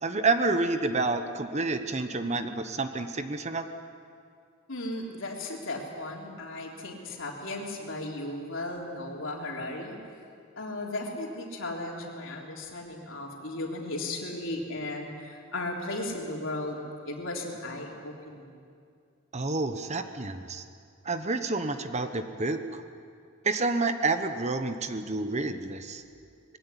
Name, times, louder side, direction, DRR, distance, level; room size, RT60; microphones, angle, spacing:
voice 1, 0.0-3.7 19.3-20.6 21.0-22.8 23.4-26.0, right 3 dB, 35° right, 8 dB, 1.0 m, -29 dB
voice 2, 4.7-10.0 10.6-16.8 17.1-18.6, left 2 dB, 70° left, -1 dB, 3.7 m, -36 dB
21.5 x 16.5 x 9.9 m, 2.3 s
head